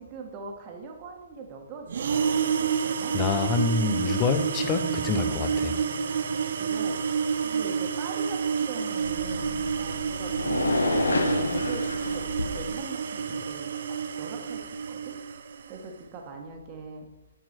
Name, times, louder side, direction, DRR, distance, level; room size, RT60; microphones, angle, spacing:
voice 1, 0.0-3.1 6.3-7.0 7.4-13.7 14.2-15.2 15.7-17.1, right 4 dB, 30° right, 1.5 m, -41 dB
sound 1, 1.9-15.8, right 6 dB, 60° right, 0.6 m, -29 dB
voice 2, 3.1-5.8, left 5 dB, 25° left, 0.7 m, -26 dB
sound 2, 4.7-10.3, equal, 5° left, 1.5 m, -48 dB
sound 3, 9.0-12.8, left 2 dB, 85° left, 1.0 m, -29 dB
10.5 x 4.7 x 4.5 m
hypercardioid pair, 135°, 0 cm